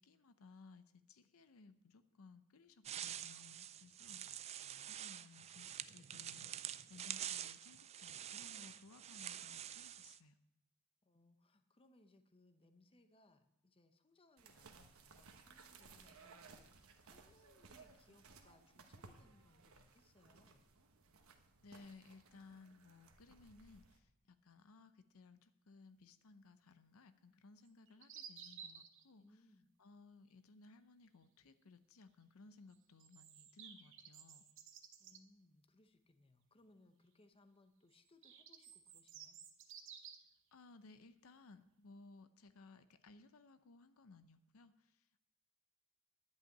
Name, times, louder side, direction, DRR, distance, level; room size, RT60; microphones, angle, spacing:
voice 1, 0.0-4.2 4.8-10.4 21.6-29.4 29.8-34.4 40.5-45.2, left 3 dB, 80° left, 11 dB, 0.6 m, -61 dB
sound 1, 2.8-10.2, right 10 dB, 30° right, 0.3 m, -47 dB
voice 2, 4.2-5.0 11.0-20.7 29.2-29.7 35.0-39.4, left 2 dB, 25° left, 8 dB, 0.8 m, -69 dB
sound 2, 14.4-24.0, right 4 dB, 85° right, 1.1 m, -62 dB
sound 3, 27.6-29.0 32.7-35.2 37.9-40.3, right 7 dB, 60° right, 0.9 m, -55 dB
10.5 x 5.7 x 8.7 m, 0.83 s
head